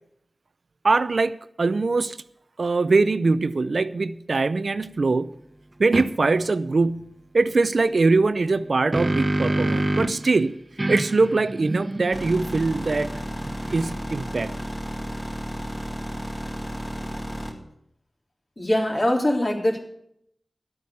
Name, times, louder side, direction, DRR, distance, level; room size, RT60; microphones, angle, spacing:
voice 1, 0.8-2.2 2.6-5.3 5.8-10.6 10.9-13.1 13.7-14.5, right 3 dB, 75° right, 0.6 m, -22 dB
sound 1, 5.9-6.1 8.5-10.3 10.8-14.1, right 1 dB, 35° right, 1.2 m, -27 dB
sound 2, 12.1-17.5, equal, 20° left, 3.4 m, -33 dB
voice 2, 18.6-19.8, left 1 dB, 40° left, 3.3 m, -22 dB
12.5 x 8.6 x 8.3 m
wide cardioid pair, 50°, 0 cm